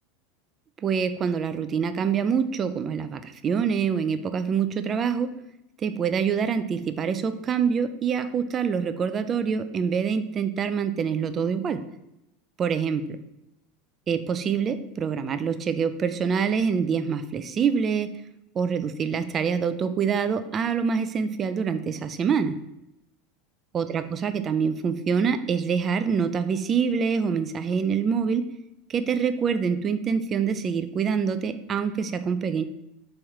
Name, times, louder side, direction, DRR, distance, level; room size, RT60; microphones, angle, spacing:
voice 1, 0.8-5.3 5.8-11.8 12.6-13.1 14.1-18.1 18.6-22.6 23.7-28.5 28.9-32.6, right 6 dB, 35° right, 11 dB, 0.4 m, -25 dB
3.6 x 3.1 x 4.4 m, 0.85 s
hypercardioid pair, 100°, 0 cm